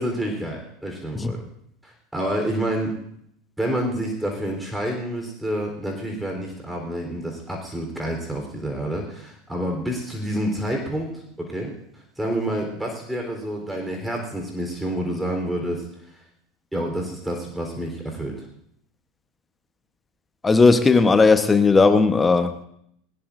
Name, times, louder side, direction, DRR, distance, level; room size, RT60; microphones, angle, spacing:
voice 1, 0.0-1.4 1.8-3.0 3.6-15.8 16.1-16.2 16.7-18.5, right 1 dB, 5° right, 1 dB, 3.6 m, -28 dB
voice 2, 20.4-22.6, left 4 dB, 20° left, 10 dB, 1.0 m, -16 dB
19.5 x 19.5 x 2.6 m, 0.72 s
figure-of-eight pair, 80°, 0 cm